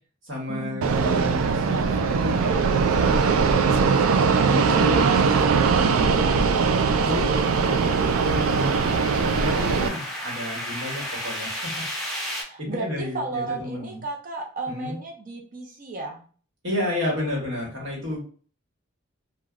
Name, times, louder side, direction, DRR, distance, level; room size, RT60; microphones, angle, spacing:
voice 1, 0.2-3.4 3.7-5.0 5.6-8.8 9.1-12.2 12.6-14.0 14.7-15.0 16.6-18.2, left 1 dB, 60° right, -4 dB, 1.2 m, -32 dB
Fixed-wing aircraft airplane, 0.8-9.9, right 5 dB, 75° right, 0.3 m, -21 dB
sound 1, 3.5-12.4, equal, ahead, 1.0 m, -36 dB
voice 2, 4.4-5.5 5.8-6.1 12.4-16.3, right 3 dB, 40° right, 1 dB, 0.6 m, -33 dB
3.2 x 2.2 x 2.4 m, 0.41 s
head